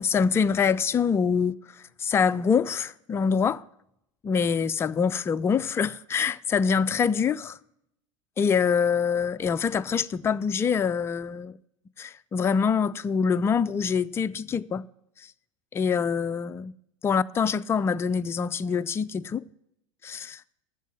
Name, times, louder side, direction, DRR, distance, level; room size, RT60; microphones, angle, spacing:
voice 1, 0.0-1.6 2.0-3.6 4.2-7.6 8.4-11.5 12.0-14.9 15.7-16.7 17.0-19.4 20.0-20.4, left 6 dB, 15° left, 0.3 m, -25 dB
13.5 x 6.8 x 6.1 m
figure-of-eight pair, 85°, 17 cm